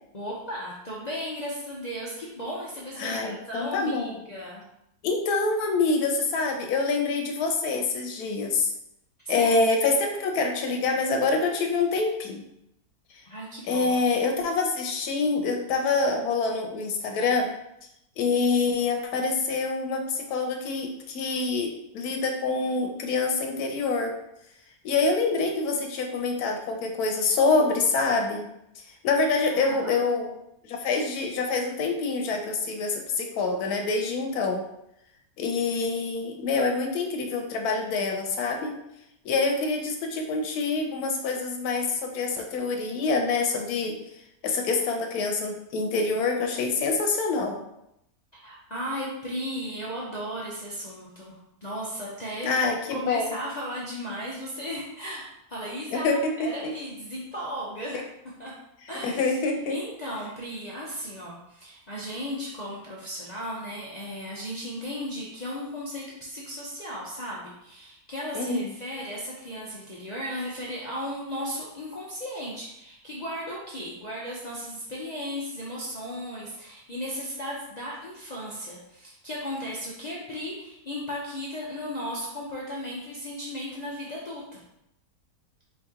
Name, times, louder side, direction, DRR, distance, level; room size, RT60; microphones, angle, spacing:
voice 1, 0.1-4.6 9.2-9.6 13.3-14.0 29.5-29.9 48.3-52.6 52.9-58.6 58.9-59.4 59.7-84.6, equal, 50° left, -6 dB, 0.5 m, -35 dB
voice 2, 3.0-4.2 5.0-8.7 9.3-12.4 13.1-13.2 13.7-17.5 18.2-24.1 24.8-28.5 28.8-30.3 30.6-34.6 35.4-38.8 39.2-44.0 44.4-47.6 52.4-53.4 55.9-56.5 57.9-58.0 59.0-59.8 68.3-68.7, left 4 dB, 75° left, 3 dB, 1.2 m, -26 dB
4.3 x 2.9 x 3.6 m, 0.81 s
omnidirectional pair, 1.7 m